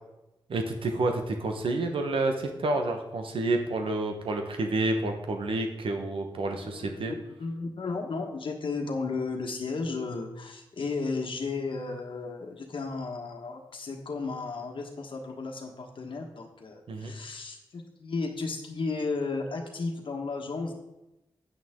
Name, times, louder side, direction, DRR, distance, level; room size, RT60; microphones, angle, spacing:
voice 1, 0.5-7.1 16.9-17.1, right 2 dB, 85° right, 4 dB, 1.1 m, -29 dB
voice 2, 6.5-20.7, left 4 dB, 70° left, 1 dB, 1.4 m, -34 dB
9.2 x 9.1 x 3.7 m, 0.95 s
wide cardioid pair, 90°, 9 cm